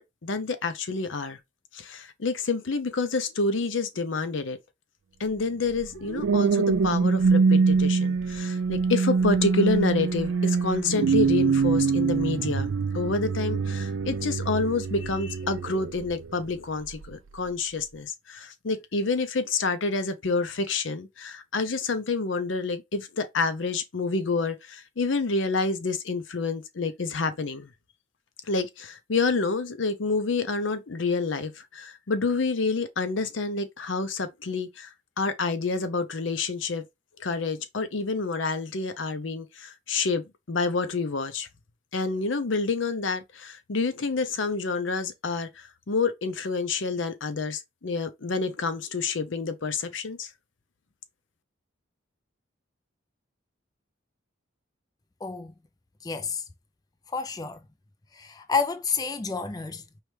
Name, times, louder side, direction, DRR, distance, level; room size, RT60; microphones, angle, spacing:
voice 1, 0.0-1.4 1.7-4.6 5.2-27.7 28.5-36.8 37.2-41.5 41.9-50.3, left 4 dB, 70° left, 0.7 m, -28 dB
sound 1, 5.7-16.3 16.9-17.1, right 5 dB, 80° right, 0.4 m, -24 dB
voice 2, 55.2-55.5 56.0-56.4 57.1-57.6 58.1-60.0, left 5 dB, 20° left, 0.4 m, -30 dB
4.7 x 3.2 x 3.2 m
head